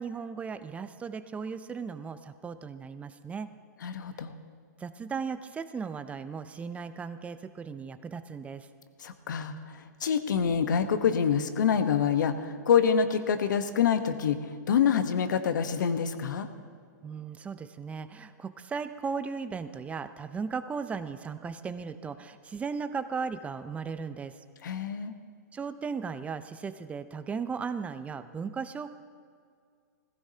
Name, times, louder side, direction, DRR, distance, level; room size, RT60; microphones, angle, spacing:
voice 1, 0.0-3.5 4.8-8.7 17.0-24.3 25.5-29.0, right 5 dB, 15° right, 12 dB, 0.5 m, -36 dB
voice 2, 3.8-4.3 9.0-14.4 14.7-16.5 24.6-25.1, left 7 dB, 75° left, 9 dB, 1.0 m, -26 dB
17.5 x 15.5 x 2.8 m, 2.2 s
hypercardioid pair, 130°, 10 cm